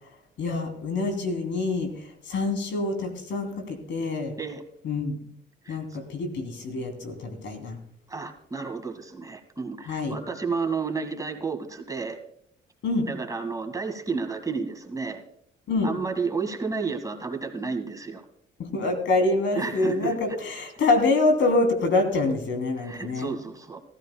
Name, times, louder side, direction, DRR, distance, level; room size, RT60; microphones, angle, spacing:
voice 1, 0.4-1.9 2.3-4.4 4.8-5.2 5.7-7.8 9.9-10.1 12.8-13.1 15.7-15.9 18.6-23.3, left 3 dB, 70° left, 5 dB, 3.0 m, -26 dB
voice 2, 8.1-12.2 13.1-15.2 15.8-18.2 19.6-20.1 22.8-23.8, right 4 dB, 15° right, 4 dB, 1.8 m, -31 dB
18.5 x 14.0 x 2.2 m, 0.70 s
cardioid pair, 90°, 20 cm